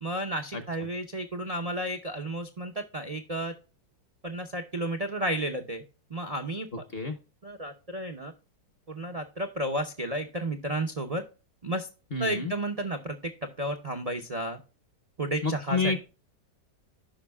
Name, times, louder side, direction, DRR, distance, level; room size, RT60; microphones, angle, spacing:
voice 1, 0.0-3.5 4.2-5.8 6.1-6.7 7.4-8.3 8.9-11.2 11.6-11.9 12.2-13.2 13.6-14.6 15.2-16.0, right 1 dB, 65° right, 5 dB, 0.3 m, -32 dB
voice 2, 12.1-12.5 15.4-16.0, left 3 dB, 45° left, 9 dB, 0.8 m, -28 dB
14.0 x 5.5 x 2.2 m, 0.33 s
omnidirectional pair, 2.0 m